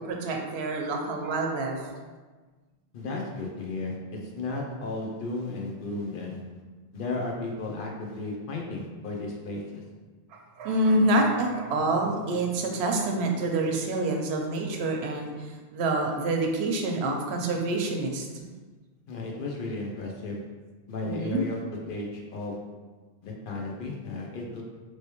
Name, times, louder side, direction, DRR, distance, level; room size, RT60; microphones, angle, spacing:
voice 1, 0.0-2.0 4.5-4.6 10.3-18.3 21.0-21.4, right 2 dB, 80° right, 2 dB, 0.8 m, -27 dB
voice 2, 2.9-6.4 6.9-9.8 10.9-11.1 19.1-20.4 20.9-21.6 21.9-22.6 23.2-24.6, left 2 dB, 60° left, -1 dB, 0.7 m, -34 dB
3.1 x 3.0 x 2.9 m, 1.3 s
omnidirectional pair, 1.1 m